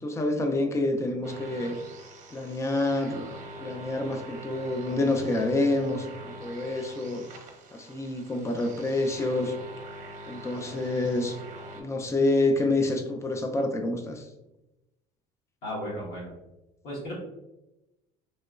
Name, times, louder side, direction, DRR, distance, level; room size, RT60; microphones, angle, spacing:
voice 1, 0.0-1.8 2.3-3.3 3.6-7.2 7.7-9.5 10.3-11.4 11.7-14.2, left 2 dB, 15° left, 4 dB, 0.4 m, -27 dB
sound 1, 1.2-11.8, right 1 dB, 45° right, 0.7 m, -44 dB
voice 2, 15.6-16.4 16.8-17.1, equal, 65° left, -7 dB, 1.3 m, -35 dB
3.0 x 2.8 x 2.4 m, 0.94 s
supercardioid pair, 100°, 18 cm